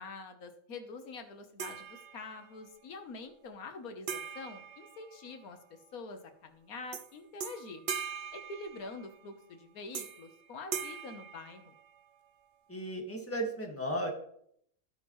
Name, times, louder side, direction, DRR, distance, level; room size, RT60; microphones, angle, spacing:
voice 1, 0.0-7.8 8.3-11.7, left 3 dB, 90° left, 6 dB, 1.5 m, -46 dB
sound 1, 1.6-2.6 4.1-5.6 6.9-7.1 7.4-9.2 9.9-10.3 10.7-12.1, right 7 dB, 50° right, 0.6 m, -41 dB
voice 2, 12.7-14.1, right 1 dB, 10° left, 1 dB, 1.7 m, -35 dB
15.0 x 5.4 x 3.1 m, 0.66 s
omnidirectional pair, 1.5 m